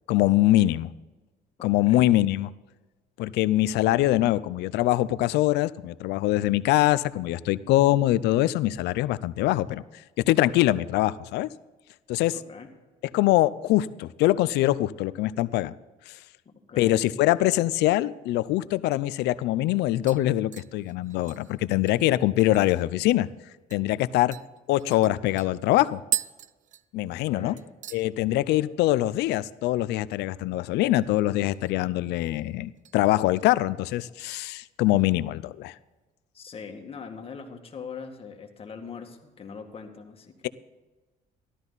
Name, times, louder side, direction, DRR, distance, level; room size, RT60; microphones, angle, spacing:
voice 1, 0.1-0.9 1.6-2.5 3.2-9.8 10.3-11.5 12.1-12.4 13.1-15.7 16.1-16.2 16.8-23.3 23.7-24.4 24.7-26.0 26.9-27.6 27.9-35.7, left 15 dB, 85° left, 16 dB, 0.5 m, -23 dB
voice 2, 1.6-2.1 12.3-12.7 16.5-17.1 27.1-27.7 36.3-40.5, left 5 dB, 35° left, 3 dB, 1.9 m, -42 dB
sound 1, 19.0-19.1 19.4-19.8 20.1-22.9 23.2-23.3 23.7-23.9 24.3-27.3 27.6-28.1 28.4-28.8 29.1-29.2 31.3-31.9 32.2-33.0 33.4-33.6 34.2-35.1 35.5-35.6, right 12 dB, 50° right, 0.5 m, -38 dB
14.0 x 12.5 x 4.1 m, 1.2 s
cardioid pair, 110°, 17 cm